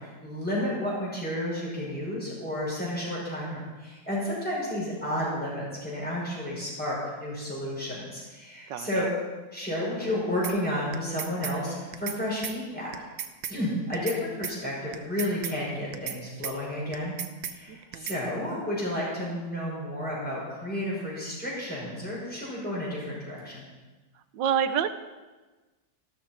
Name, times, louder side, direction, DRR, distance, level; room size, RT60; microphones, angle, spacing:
voice 1, 0.0-9.1 9.5-12.9 13.5-17.1 17.5-23.6, left 1 dB, 5° left, -6 dB, 5.7 m, -31 dB
voice 2, 8.7-9.1 17.7-18.1 24.3-24.9, right 8 dB, 85° right, 11 dB, 1.4 m, -28 dB
sound 1, 10.4-10.6 10.9-11.6 11.9-12.2 12.4-12.6 12.9-13.6 13.9-14.2 14.4-14.6 14.9-15.6 15.9-16.2 16.4-16.6 16.9-17.6 17.9-18.2, right 9 dB, 65° right, 1.2 m, -35 dB
15.5 x 12.5 x 4.4 m, 1.2 s
omnidirectional pair, 1.9 m